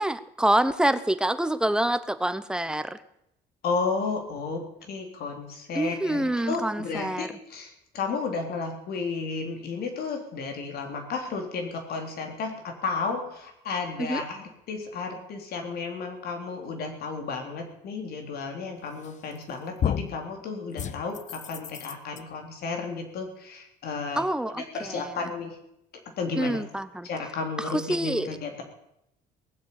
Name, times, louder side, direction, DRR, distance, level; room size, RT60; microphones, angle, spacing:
voice 1, 0.0-3.0 5.7-7.3 14.0-14.2 24.2-25.2 26.4-27.1 27.6-28.4, right 1 dB, 5° right, 12 dB, 0.9 m, -26 dB
voice 2, 3.6-24.2 24.5-25.6 26.2-26.6 27.0-28.6, left 4 dB, 65° left, 3 dB, 3.6 m, -33 dB
sound 1, 19.0-19.4 19.8-20.2 20.8-22.2, left 8 dB, 45° left, 0.9 m, -31 dB
18.5 x 7.6 x 8.7 m, 0.80 s
cardioid pair, 110°, 17 cm